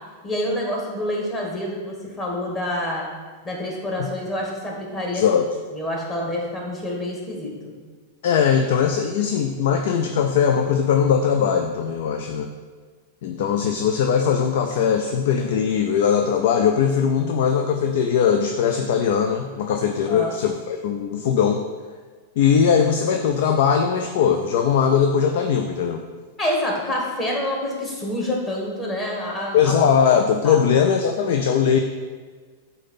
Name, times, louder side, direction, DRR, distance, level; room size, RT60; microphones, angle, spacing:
voice 1, 0.2-3.1 3.4-5.2 5.7-7.8 20.1-20.3 26.4-29.7 30.4-30.6, left 1 dB, 20° left, -2 dB, 1.9 m, -27 dB
voice 2, 5.1-5.5 8.2-12.5 13.2-21.6 22.4-26.0 29.5-31.8, left 7 dB, 60° left, 5 dB, 0.4 m, -20 dB
8.1 x 2.8 x 5.5 m, 1.5 s
figure-of-eight pair, 95°, 0 cm